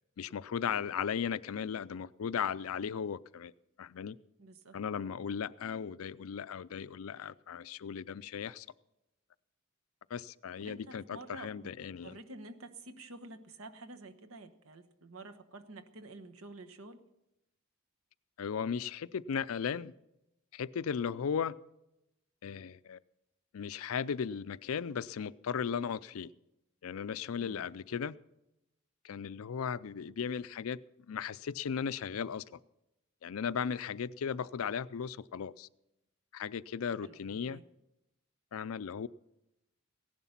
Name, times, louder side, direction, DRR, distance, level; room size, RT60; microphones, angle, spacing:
voice 1, 0.2-3.5 3.8-4.2 4.7-8.7 10.1-12.2 18.4-19.9 20.5-21.6 22.4-23.0 23.5-26.3 26.8-28.2 29.0-30.8 31.1-32.6 33.2-35.7 36.3-37.6 38.5-39.1, left 7 dB, 80° left, 0.4 m, -36 dB
voice 2, 4.4-4.8 10.6-11.7 12.0-17.0 27.4-27.6 37.0-37.2 37.4-37.6, right 2 dB, 80° right, 1.2 m, -49 dB
16.5 x 11.0 x 5.8 m
head